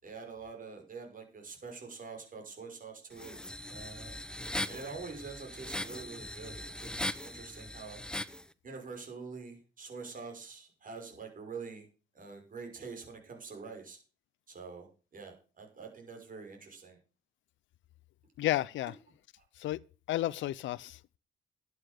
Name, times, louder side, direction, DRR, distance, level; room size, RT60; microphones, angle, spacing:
voice 1, 0.0-3.4 3.7-4.2 4.7-8.0 8.6-11.9 12.1-14.0 14.5-17.0 19.4-19.5, right 4 dB, 45° right, 5.9 m, -46 dB
sound 1, 3.1-8.4, left 1 dB, 5° left, 0.8 m, -40 dB
voice 2, 18.4-18.9 19.6-19.8 20.1-21.2, left 14 dB, 70° left, 0.5 m, -32 dB
11.5 x 8.6 x 6.6 m
cardioid pair, 90°, 20 cm